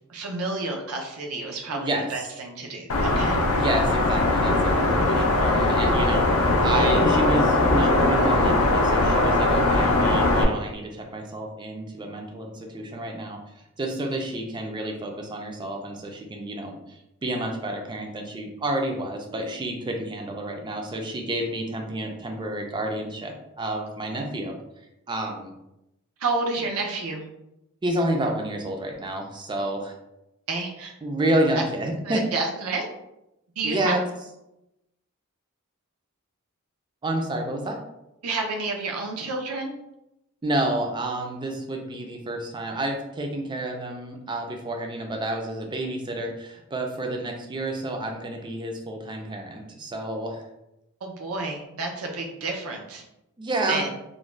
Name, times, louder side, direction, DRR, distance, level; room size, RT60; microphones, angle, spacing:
voice 1, 0.1-3.4 26.2-27.2 30.5-30.9 31.6-31.7 32.1-32.9 33.6-34.0 38.2-39.8 51.0-53.0 53.7-53.9, right 3 dB, 85° right, 2 dB, 0.6 m, -30 dB
voice 2, 1.7-2.3 3.5-13.4 13.8-24.5 25.1-25.5 27.8-29.9 31.0-32.2 33.6-34.0 37.0-37.8 40.4-50.4 53.4-53.8, right 1 dB, 20° right, 2 dB, 0.3 m, -29 dB
sound 1, 2.9-10.4, left 2 dB, 70° left, 0.5 m, -20 dB
2.5 x 2.1 x 3.1 m, 0.89 s
head